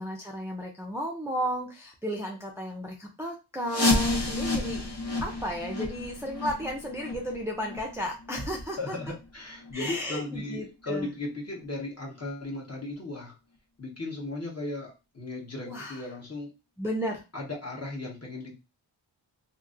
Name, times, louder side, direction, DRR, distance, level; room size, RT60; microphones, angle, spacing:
voice 1, 0.0-4.8 5.2-8.9 9.7-11.1 15.7-16.0 16.8-17.2, equal, 5° right, -1 dB, 0.6 m, -34 dB
sound 1, 3.7-9.3 9.6-9.7 10.3-10.4 11.0-11.1 11.6-11.7, left 2 dB, 55° left, 1.1 m, -30 dB
voice 2, 8.8-13.4 13.8-16.5 17.3-18.5, left 2 dB, 30° left, -1 dB, 1.2 m, -36 dB
2.8 x 2.7 x 2.5 m, 0.27 s
wide cardioid pair, 85°, 48 cm